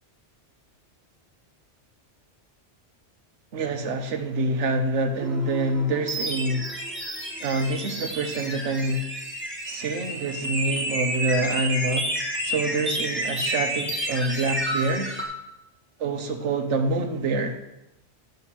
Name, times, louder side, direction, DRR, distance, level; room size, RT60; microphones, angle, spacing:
voice 1, 3.5-6.7 7.4-9.1 9.7-12.1 12.4-15.1 16.0-17.6, right 2 dB, 85° right, 5 dB, 1.2 m, -26 dB
sound 1, 5.2-15.3, right 1 dB, 10° right, 1.2 m, -30 dB
9.9 x 3.4 x 5.8 m, 0.92 s
omnidirectional pair, 1.2 m